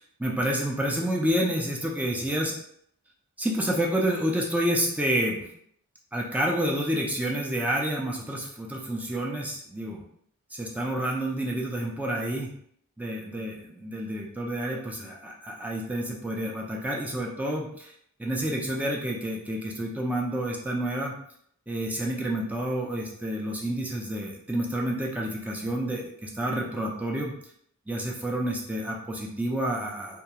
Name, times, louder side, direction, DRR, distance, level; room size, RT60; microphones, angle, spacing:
voice 1, 0.2-2.5 3.4-5.5 6.1-10.0 10.5-12.6 13.0-17.9 18.2-21.2 21.7-27.3 27.9-30.2, right 1 dB, 5° right, -2 dB, 0.3 m, -29 dB
2.3 x 2.2 x 2.8 m, 0.66 s
head